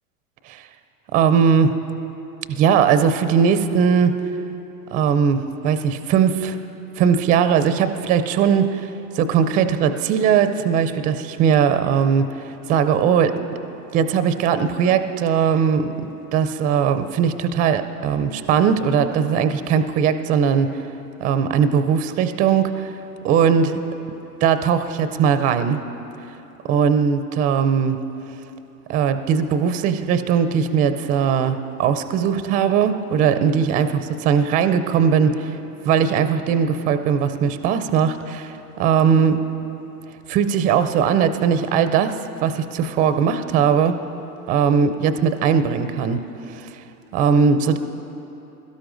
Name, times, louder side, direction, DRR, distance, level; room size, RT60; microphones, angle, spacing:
voice 1, 1.1-1.8 2.5-4.2 4.9-6.6 7.0-12.3 12.7-13.4 13.9-15.9 16.3-20.7 21.2-22.9 23.2-23.8 24.4-25.8 26.7-28.0 28.9-35.6 35.8-39.5 40.3-44.0 44.5-46.8 47.1-47.8, right 7 dB, 20° right, 11 dB, 0.4 m, -19 dB
22.0 x 12.5 x 2.6 m, 3.0 s
hypercardioid pair, 100°, 45 cm